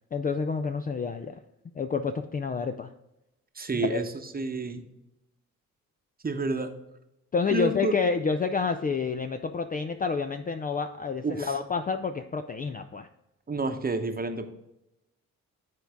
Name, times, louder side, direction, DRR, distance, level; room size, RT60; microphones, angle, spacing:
voice 1, 0.1-1.4 1.7-2.9 3.8-4.0 7.3-13.1, left 5 dB, 20° left, 7 dB, 0.4 m, -29 dB
voice 2, 3.5-4.8 6.2-6.7 7.5-7.9 11.2-11.6 13.5-14.5, right 2 dB, 20° right, 7 dB, 1.0 m, -29 dB
10.5 x 4.5 x 3.5 m, 0.90 s
hypercardioid pair, 45°, 42 cm